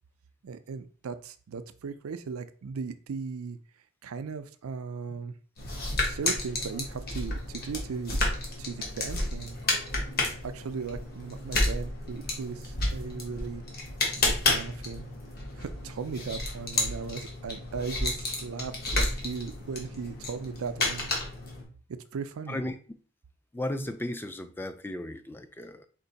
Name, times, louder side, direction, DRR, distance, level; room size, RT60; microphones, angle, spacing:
voice 1, 0.4-3.6 4.0-5.3 6.0-8.2 8.6-9.6 10.4-13.6 14.2-15.1 15.6-21.1 22.1-22.6, right 5 dB, 80° right, 0.4 m, -37 dB
sound 1, 5.6-21.6, left 2 dB, 50° left, 1.2 m, -31 dB
voice 2, 23.5-25.9, left 1 dB, 10° left, 0.3 m, -35 dB
4.5 x 2.5 x 4.0 m
head